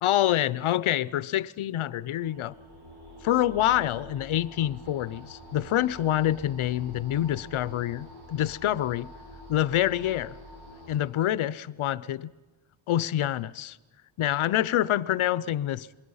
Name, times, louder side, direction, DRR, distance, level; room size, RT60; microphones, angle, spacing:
voice 1, 0.0-2.6 3.2-9.1 9.5-10.4 10.9-12.3 12.9-13.8 14.2-15.9, left 12 dB, 85° left, 0.7 m, -26 dB
sound 1, 2.2-11.0, left 1 dB, 50° right, 5.1 m, -47 dB
27.5 x 21.0 x 5.6 m
wide cardioid pair, 140°, 48 cm